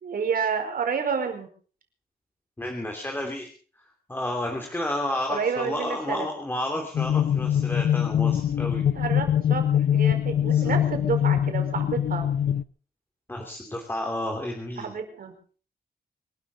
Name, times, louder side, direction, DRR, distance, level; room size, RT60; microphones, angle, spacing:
voice 1, 0.0-1.5 5.3-6.3 8.7-9.7 9.9-12.3 14.8-15.3, right 6 dB, 65° right, 6 dB, 5.0 m, -29 dB
voice 2, 2.6-3.5 4.1-8.8 10.5-10.8 13.3-14.9, left 1 dB, 15° left, 2 dB, 3.0 m, -31 dB
sound 1, 6.9-12.6, left 10 dB, 65° left, 0.7 m, -23 dB
25.5 x 12.5 x 4.1 m, 0.41 s
wide cardioid pair, 150°, 16 cm